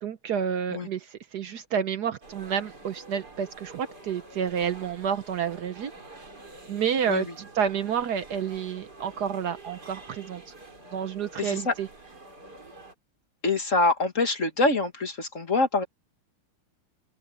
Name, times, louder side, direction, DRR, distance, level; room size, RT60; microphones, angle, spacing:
voice 1, 0.0-5.9 6.7-10.5 10.9-11.9, right 7 dB, 60° right, 1.1 m, -29 dB
sound 1, 2.2-12.9, right 2 dB, 45° right, 5.3 m, -47 dB
voice 2, 11.4-11.7 13.4-15.8, left 3 dB, 35° left, 2.2 m, -25 dB
open air
omnidirectional pair, 2.4 m